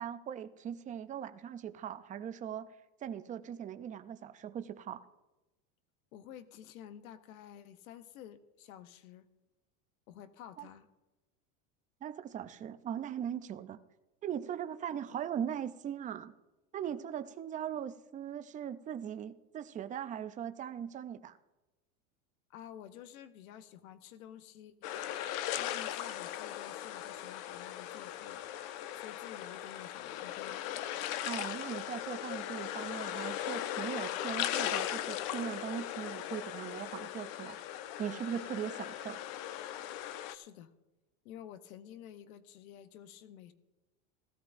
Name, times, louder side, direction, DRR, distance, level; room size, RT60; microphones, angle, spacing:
voice 1, 0.0-2.7 3.0-5.0 10.6-10.7 12.0-13.8 14.2-16.3 16.7-21.4 31.2-37.6 38.0-39.2, right 9 dB, 20° right, 11 dB, 0.4 m, -40 dB
voice 2, 6.1-9.2 10.1-10.9 22.5-24.7 25.5-28.6 28.9-30.6 40.3-40.7 41.2-43.5, left 10 dB, 90° left, 11 dB, 0.9 m, -51 dB
sound 1, 24.8-40.3, left 12 dB, 55° left, 0.7 m, -38 dB
16.5 x 13.5 x 2.6 m, 1.1 s
supercardioid pair, 130°, 41 cm